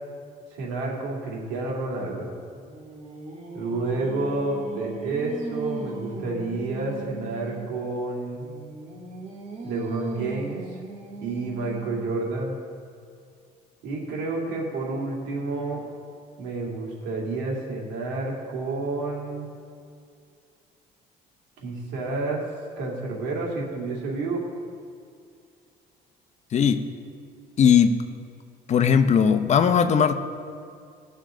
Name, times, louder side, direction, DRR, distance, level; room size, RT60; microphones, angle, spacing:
voice 1, 0.5-2.3 3.5-8.4 9.6-10.8 11.2-12.6 13.8-15.8 16.4-19.5 21.6-22.4 22.8-24.4, right 3 dB, 90° right, -2 dB, 2.5 m, -30 dB
Singing, 2.4-7.8 8.4-12.3, right 3 dB, 40° right, 1.4 m, -38 dB
voice 2, 27.6-28.0 28.7-30.1, left 7 dB, 45° left, 9 dB, 0.7 m, -18 dB
17.5 x 6.3 x 3.8 m, 2.3 s
cardioid pair, 110°, 17 cm